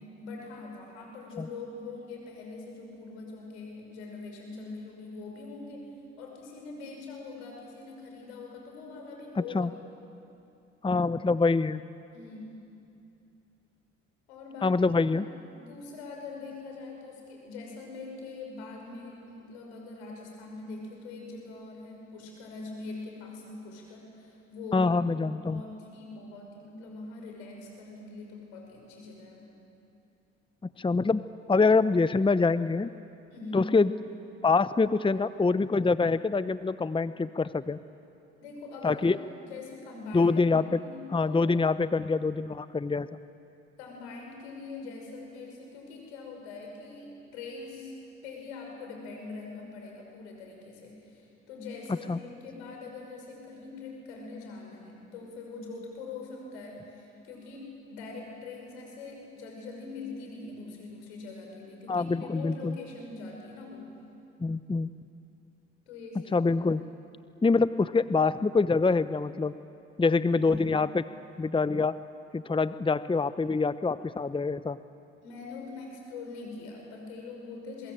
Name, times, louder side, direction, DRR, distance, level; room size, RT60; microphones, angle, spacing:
voice 1, 0.0-5.9 6.2-9.7 12.1-12.6 14.3-15.0 15.5-29.6 33.3-33.7 38.4-40.3 40.8-41.4 43.8-47.9 48.2-63.9 65.9-66.5 70.3-70.7 75.2-77.9, left 3 dB, 90° left, 1 dB, 5.9 m, -43 dB
voice 2, 9.4-9.7 10.8-11.8 14.6-15.3 24.7-25.6 30.8-31.2 31.5-32.9 33.5-33.9 34.4-37.8 38.8-39.2 40.1-40.8 41.1-43.1 52.1-52.2 61.9-62.8 64.4-64.9 66.3-66.8 67.4-69.5 70.0-71.0 71.4-72.0 72.3-74.8, left 4 dB, 15° left, 14 dB, 0.8 m, -25 dB
27.0 x 23.0 x 9.0 m, 2.7 s
hypercardioid pair, 50°, 32 cm